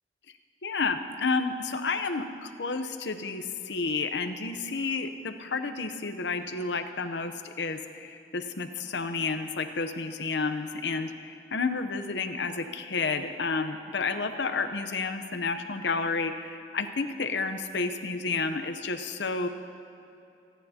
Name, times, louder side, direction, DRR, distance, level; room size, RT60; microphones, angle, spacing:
voice 1, 0.6-19.5, left 4 dB, 70° left, 8 dB, 0.8 m, -31 dB
26.5 x 10.5 x 2.8 m, 2.7 s
head